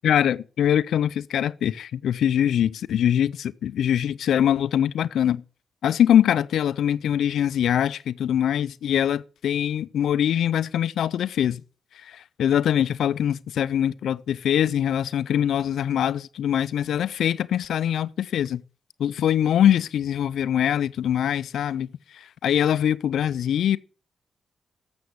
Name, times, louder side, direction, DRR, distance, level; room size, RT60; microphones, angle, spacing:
voice 1, 0.0-5.4 5.8-11.6 12.0-18.6 19.0-21.9 22.1-23.8, left 10 dB, 80° left, 0.4 m, -23 dB
7.8 x 6.9 x 6.8 m
supercardioid pair, 55°, 0 cm